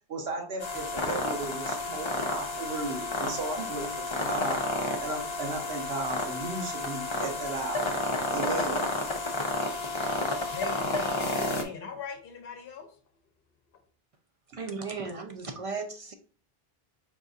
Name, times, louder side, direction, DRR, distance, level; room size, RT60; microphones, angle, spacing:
voice 1, 0.0-8.0 8.3-8.9 10.3-10.4, right 2 dB, 85° right, 1.2 m, -35 dB
sound 1, 0.6-11.6, left 2 dB, 35° left, 0.6 m, -31 dB
voice 2, 10.2-13.0, left 6 dB, 65° left, 0.8 m, -40 dB
voice 3, 14.6-16.1, right 4 dB, 45° right, 0.4 m, -36 dB
5.1 x 3.9 x 2.4 m
omnidirectional pair, 1.0 m